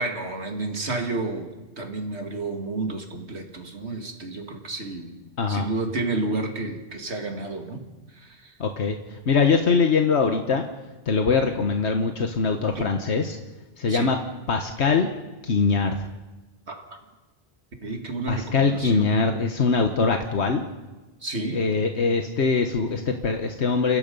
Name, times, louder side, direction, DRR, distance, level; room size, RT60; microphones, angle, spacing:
voice 1, 0.0-1.5 1.8-5.2 5.5-7.8 8.1-8.5 12.7-12.9 13.9-14.1 16.7-16.8 17.8-19.1 21.2-21.6, right 2 dB, 80° right, 4 dB, 2.6 m, -30 dB
voice 2, 8.6-10.6 11.1-13.4 13.8-14.2 14.5-15.1 15.4-16.1 18.3-20.6 21.5-24.0, left 4 dB, 80° left, 5 dB, 1.5 m, -22 dB
29.5 x 16.5 x 5.4 m, 1.1 s
omnidirectional pair, 1.1 m